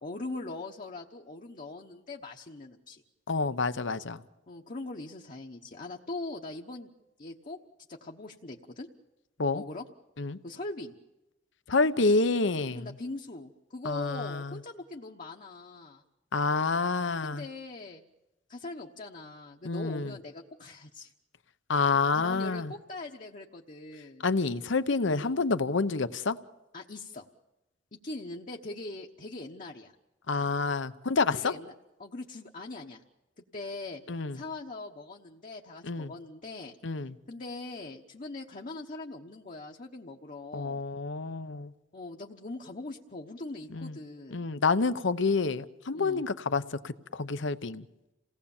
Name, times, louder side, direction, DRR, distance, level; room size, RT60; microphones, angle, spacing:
voice 1, 0.0-3.0 4.5-6.9 7.2-7.6 7.9-8.9 9.5-9.8 10.4-10.9 12.7-16.0 17.2-18.0 18.5-21.1 21.7-24.2 25.1-25.3 26.7-27.3 27.9-29.9 31.3-31.7 32.0-33.0 33.4-34.0 34.3-36.7 37.3-40.8 41.9-44.5 45.9-46.2, left 2 dB, 45° left, 1 dB, 1.1 m, -41 dB
voice 2, 3.3-4.2 9.4-9.6 10.2-10.4 11.7-12.9 13.8-14.6 16.3-17.4 19.6-20.1 21.7-22.7 24.2-26.4 30.3-31.5 34.1-34.4 35.8-36.1 36.8-37.2 40.5-41.7 43.7-44.0 44.3-47.9, left 4 dB, 70° left, 13 dB, 0.9 m, -28 dB
28.0 x 18.0 x 7.2 m, 1.0 s
head